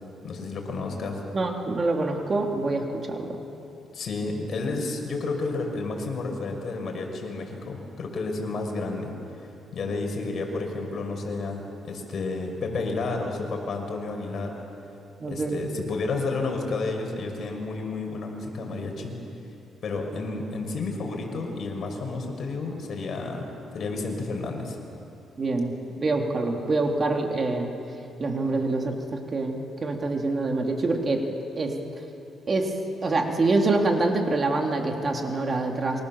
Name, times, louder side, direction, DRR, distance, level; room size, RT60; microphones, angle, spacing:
voice 1, 0.2-1.2 3.9-9.1 9.7-14.6 15.3-19.1 19.8-23.5 23.7-24.8, left 3 dB, 55° left, 2 dB, 5.6 m, -31 dB
voice 2, 1.3-3.4 15.2-15.6 25.4-27.7 28.2-31.8 32.5-32.7 33.0-36.0, right 2 dB, 35° right, 2 dB, 3.2 m, -26 dB
28.5 x 24.5 x 7.3 m, 2.7 s
cardioid pair, 90°, 0 cm